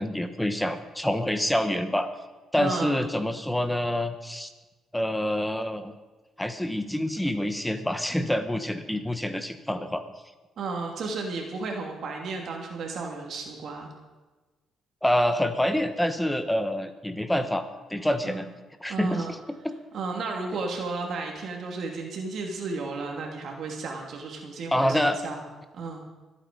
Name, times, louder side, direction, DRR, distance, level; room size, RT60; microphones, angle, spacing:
voice 1, 0.0-2.1 2.5-4.5 4.9-5.9 6.4-10.0 15.0-17.6 17.9-18.5 18.8-19.4 19.6-19.7 20.5-20.6 24.7-25.2, left 1 dB, 5° left, 9 dB, 1.2 m, -27 dB
voice 2, 2.6-3.0 10.6-13.9 18.2-18.4 18.9-19.3 19.9-25.4 25.7-26.0, right 3 dB, 65° right, 1 dB, 2.6 m, -33 dB
25.0 x 8.9 x 5.3 m, 1.2 s
cardioid pair, 90°, 0 cm